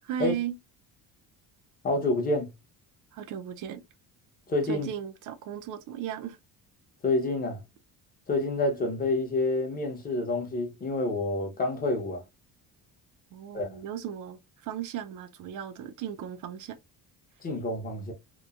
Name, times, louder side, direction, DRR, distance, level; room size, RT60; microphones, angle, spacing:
voice 1, 0.0-0.6 3.1-3.8 4.7-6.4 13.3-16.8, right 9 dB, 55° right, 0.5 m, -36 dB
voice 2, 1.8-2.5 4.5-4.9 7.0-7.6 8.3-12.2 13.5-13.8 17.4-18.1, left 2 dB, 25° left, 0.7 m, -28 dB
3.0 x 2.1 x 2.3 m
cardioid pair, 155°, 37 cm